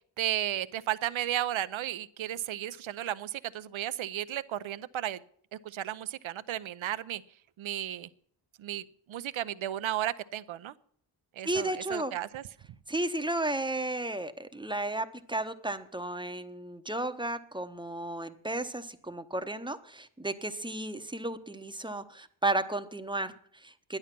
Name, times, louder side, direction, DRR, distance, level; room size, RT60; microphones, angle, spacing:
voice 1, 0.2-5.2 5.5-7.2 7.6-8.1 8.6-10.8 11.3-12.4, right 12 dB, 75° right, 14 dB, 0.7 m, -34 dB
voice 2, 11.4-12.1 12.9-24.0, right 2 dB, 10° right, 8 dB, 0.8 m, -33 dB
12.0 x 10.5 x 6.0 m, 0.62 s
cardioid pair, 90°, 48 cm